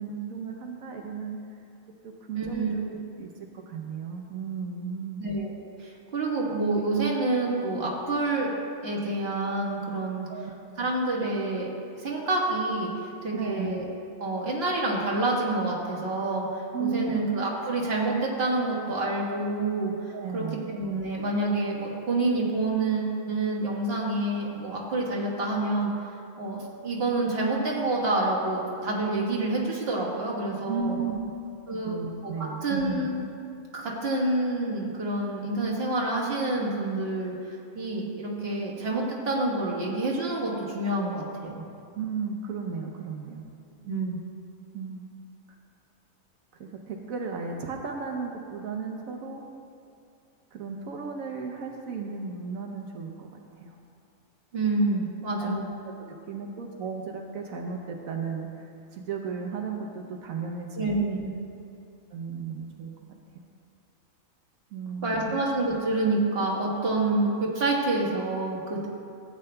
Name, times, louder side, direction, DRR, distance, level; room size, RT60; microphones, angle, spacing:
voice 1, 0.0-1.4 2.0-3.3 3.7-5.2 10.3-10.5 13.3-13.7 16.7-17.2 20.1-20.7 30.7-31.2 31.7-33.0 41.9-43.5 44.7-45.1 46.6-49.4 50.5-53.3 53.6-53.8 55.4-55.6 56.3-61.1 62.1-62.9 63.3-63.4 64.7-65.4, right 5 dB, 90° right, 1 dB, 1.2 m, -34 dB
voice 2, 2.4-2.9 5.2-8.5 8.8-10.3 10.8-11.7 12.0-12.9 13.2-13.9 14.2-19.9 20.3-25.9 26.4-31.0 31.7-32.0 32.2-33.2 33.7-41.6 43.8-44.2 54.5-55.7 60.8-61.3 65.0-68.9, right 2 dB, 50° right, -3 dB, 1.7 m, -28 dB
16.0 x 8.8 x 2.2 m, 2.5 s
omnidirectional pair, 1.4 m